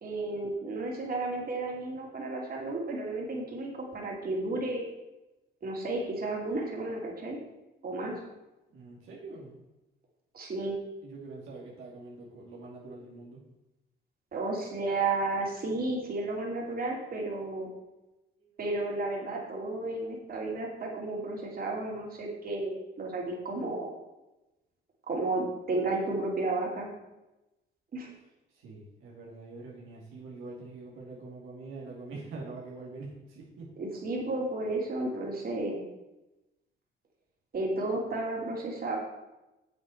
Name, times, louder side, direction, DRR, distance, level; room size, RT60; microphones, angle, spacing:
voice 1, 0.0-4.9 5.6-7.4 7.8-8.1 10.3-10.8 14.3-17.7 18.6-23.9 25.1-26.9 27.9-28.1 33.8-35.8 37.5-39.0, right 2 dB, 50° right, -2 dB, 2.8 m, -32 dB
voice 2, 8.7-9.6 11.0-13.4 18.4-18.5 28.5-33.7, right 3 dB, 85° right, -3 dB, 2.2 m, -44 dB
8.0 x 7.6 x 4.4 m, 0.99 s
cardioid pair, 90°, 20 cm